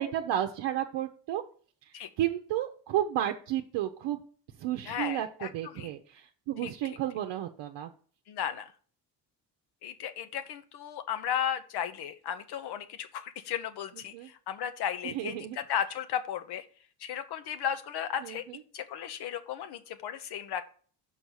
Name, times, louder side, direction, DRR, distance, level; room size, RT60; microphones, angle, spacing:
voice 1, 0.0-1.4 2.2-4.2 4.6-7.9 14.1-14.3 15.0-15.6 18.2-18.6, right 12 dB, 80° right, 4 dB, 0.8 m, -32 dB
voice 2, 4.9-5.9 6.6-6.7 8.3-8.7 9.8-16.7 17.0-18.4 18.7-20.7, left 9 dB, 65° left, 11 dB, 1.0 m, -35 dB
5.5 x 5.4 x 6.4 m, 0.44 s
cardioid pair, 115°, 42 cm